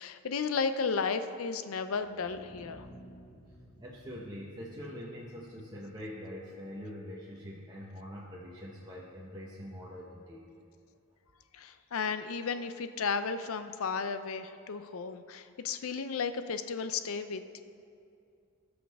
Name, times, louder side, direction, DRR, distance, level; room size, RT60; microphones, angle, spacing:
voice 1, 0.0-2.9 11.5-17.6, left 5 dB, 75° left, 10 dB, 0.5 m, -34 dB
sound 1, 1.9-7.9, equal, 55° left, 1.2 m, -56 dB
voice 2, 3.8-10.4, equal, 20° right, -6 dB, 0.9 m, -44 dB
17.5 x 6.3 x 3.5 m, 2.5 s
head